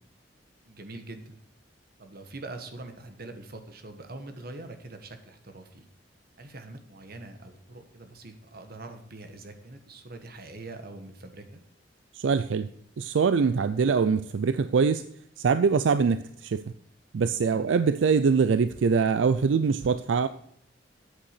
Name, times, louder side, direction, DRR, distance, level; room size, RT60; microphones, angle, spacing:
voice 1, 0.7-1.4 2.0-5.8 6.4-11.6 17.3-17.7, right 2 dB, 55° right, 6 dB, 1.4 m, -43 dB
voice 2, 12.1-12.7 13.0-15.0 15.4-16.6 17.1-20.3, right 5 dB, 80° right, 13 dB, 0.4 m, -23 dB
8.5 x 8.2 x 6.6 m, 0.71 s
head